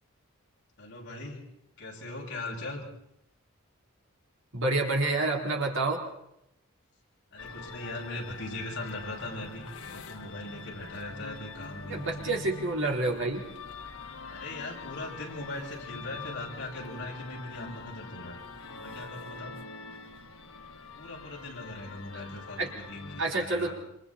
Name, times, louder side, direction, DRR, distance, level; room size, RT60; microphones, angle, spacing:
voice 1, 0.8-1.4 1.8-2.8 7.3-12.4 14.3-18.4 18.7-19.6 21.0-23.8, left 2 dB, 55° left, -2 dB, 7.1 m, -40 dB
voice 2, 4.5-6.0 11.9-13.5 22.1-22.2 22.6-22.7 23.2-23.7, right 2 dB, 60° right, 0 dB, 4.2 m, -28 dB
sound 1, 7.4-23.2, left 4 dB, 85° left, 2.0 m, -44 dB
27.5 x 27.0 x 4.3 m, 0.81 s
head